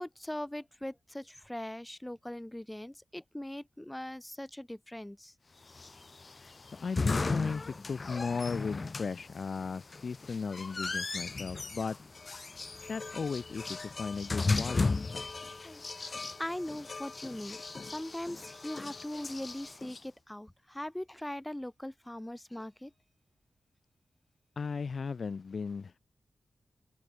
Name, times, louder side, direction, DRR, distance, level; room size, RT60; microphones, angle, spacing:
voice 1, 0.0-5.3 15.6-17.6 17.9-22.9, left 1 dB, 10° left, 0.9 m, -41 dB
sound 1, 5.7-20.0, left 3 dB, 35° left, 1.0 m, -36 dB
voice 2, 6.8-12.0 12.9-15.2 24.6-26.0, left 5 dB, 55° left, 0.5 m, -36 dB
open air
wide cardioid pair, 125°, 0 cm